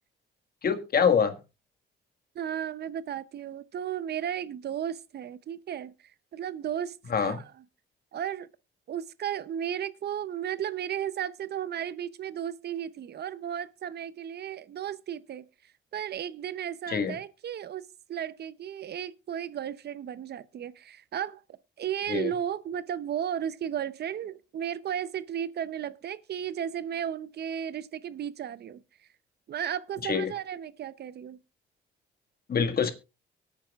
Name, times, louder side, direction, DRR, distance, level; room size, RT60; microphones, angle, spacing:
voice 1, 0.6-1.4 7.1-7.4 16.9-17.1 22.1-22.3 30.0-30.3 32.5-32.9, left 6 dB, 50° left, 1.7 m, -25 dB
voice 2, 2.3-7.4 8.1-8.5 8.9-15.5 15.9-28.8 29.5-31.4, right 9 dB, 55° right, 0.7 m, -34 dB
23.5 x 8.9 x 2.4 m
cardioid pair, 90°, 20 cm